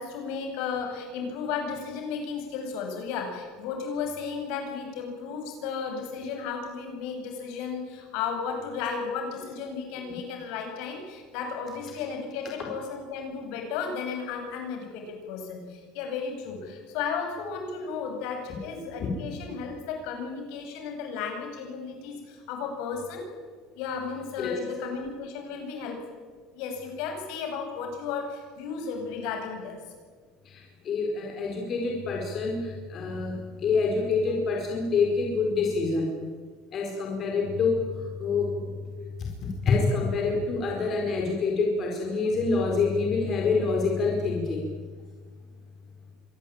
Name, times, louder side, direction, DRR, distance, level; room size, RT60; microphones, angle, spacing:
voice 1, 0.0-23.2 23.7-26.0 26.5-29.8, left 5 dB, 65° left, 3 dB, 7.5 m, -34 dB
voice 2, 30.4-36.1 36.7-37.8 38.2-38.7 39.4-44.7, left 4 dB, 35° left, 0 dB, 4.6 m, -26 dB
25.5 x 19.5 x 8.8 m, 1.5 s
cardioid pair, 160°, 0 cm